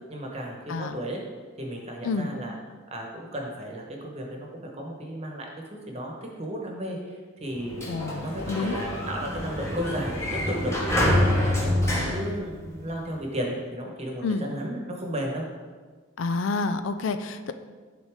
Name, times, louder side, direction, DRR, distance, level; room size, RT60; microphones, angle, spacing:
voice 1, 0.1-1.2 1.6-2.5 2.9-7.9 8.2-15.4, equal, 30° right, 0 dB, 1.1 m, -34 dB
voice 2, 0.7-1.0 2.0-2.3 7.9-8.8 14.2-14.4 16.2-17.5, left 3 dB, 65° left, 10 dB, 0.4 m, -29 dB
Sliding door, 7.5-13.1, left 1 dB, 15° left, 1.1 m, -27 dB
10.5 x 3.9 x 3.6 m, 1.4 s
head